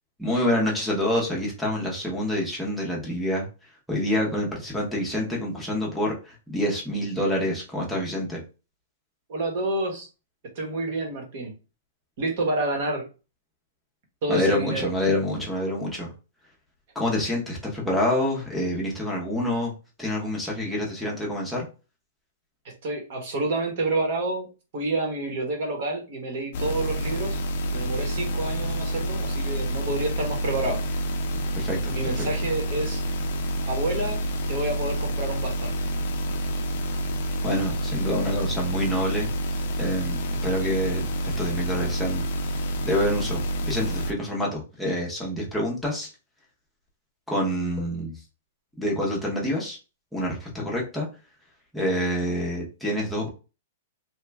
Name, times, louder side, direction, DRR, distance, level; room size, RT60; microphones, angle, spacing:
voice 1, 0.2-3.5 3.9-8.4 14.3-16.1 16.9-19.7 20.0-21.7 31.6-32.3 37.4-39.3 39.8-41.1 41.4-42.2 42.9-46.1 47.3-48.1 48.8-49.8 50.1-51.1 51.7-53.3, left 1 dB, ahead, -4 dB, 0.7 m, -27 dB
voice 2, 9.3-10.1 10.5-11.5 12.2-13.1 14.2-14.9 22.6-24.5 24.7-27.4 27.7-30.8 31.9-33.0 33.7-34.2 34.5-35.7, right 2 dB, 40° right, 2 dB, 1.0 m, -28 dB
sound 1, 26.5-44.1, equal, 45° left, 0.5 m, -28 dB
3.0 x 2.3 x 3.3 m, 0.32 s
hypercardioid pair, 175°, 0 cm